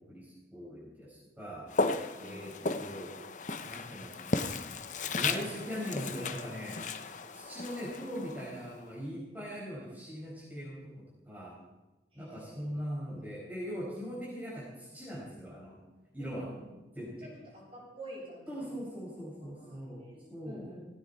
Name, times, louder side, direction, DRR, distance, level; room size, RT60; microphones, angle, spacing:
voice 1, 0.1-1.7 2.2-2.5 2.8-3.2 3.5-4.3 5.1-6.8 7.3-11.5 12.1-15.8 16.1-16.5 16.9-17.3 18.5-20.0 20.3-20.7, equal, 10° right, -8 dB, 5.1 m, -41 dB
Walk footsteps, 1.7-8.8, left 3 dB, 45° left, 0.8 m, -35 dB
voice 2, 2.1-2.5 12.1-12.7 16.2-16.7 17.2-18.8 19.4-20.8, equal, 35° right, -5 dB, 7.5 m, -49 dB
17.5 x 17.0 x 4.3 m, 1.1 s
head